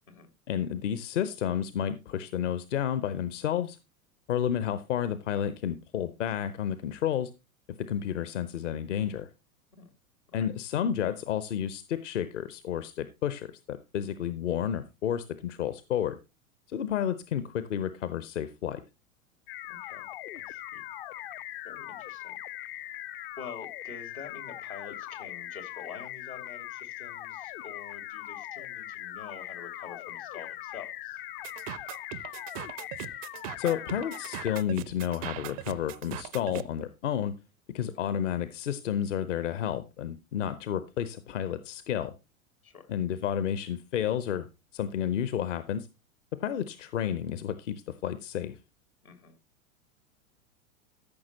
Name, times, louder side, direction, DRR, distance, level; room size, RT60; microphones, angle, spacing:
voice 1, 0.5-3.8 4.3-7.3 7.9-9.3 10.3-16.2 16.7-18.8 33.6-37.3 37.7-42.1 42.9-44.5 44.7-45.9 46.4-48.6, left 9 dB, 60° left, 13 dB, 0.9 m, -31 dB
sound 1, 19.5-34.6, left 14 dB, 40° left, 0.5 m, -41 dB
voice 2, 19.7-20.1 20.3-20.8 21.1-21.3 21.6-22.4 23.4-31.2 42.6-42.9 49.0-49.4, left 6 dB, 80° left, 9 dB, 2.6 m, -47 dB
sound 2, 31.4-36.7, right 14 dB, 30° right, 0.4 m, -40 dB
13.5 x 6.1 x 4.1 m, 0.27 s
figure-of-eight pair, 95°, 42 cm